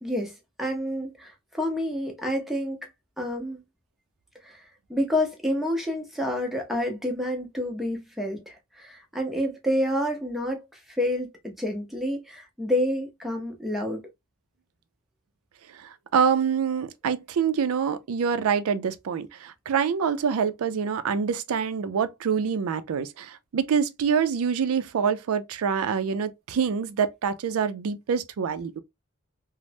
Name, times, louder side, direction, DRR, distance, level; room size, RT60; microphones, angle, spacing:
voice 1, 0.0-2.8 3.2-3.6 4.4-4.6 4.9-14.0, left 1 dB, ahead, 0.6 m, -29 dB
voice 2, 15.7-28.8, right 6 dB, 85° right, 0.4 m, -26 dB
3.1 x 2.0 x 2.6 m
head